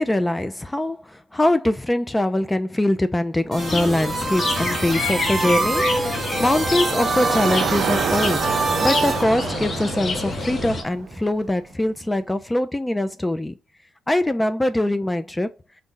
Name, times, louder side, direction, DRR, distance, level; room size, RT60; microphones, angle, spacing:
voice 1, 0.0-13.6 14.1-15.5, left 1 dB, 15° left, 0.5 m, -23 dB
sound 1, 3.5-9.2, right 3 dB, 35° right, 0.9 m, -26 dB
sound 2, 3.6-10.8, left 3 dB, 40° left, 0.8 m, -27 dB
Bicycle, 3.6-11.9, right 9 dB, 70° right, 0.3 m, -30 dB
4.0 x 2.3 x 3.7 m
cardioid pair, 90°, 0 cm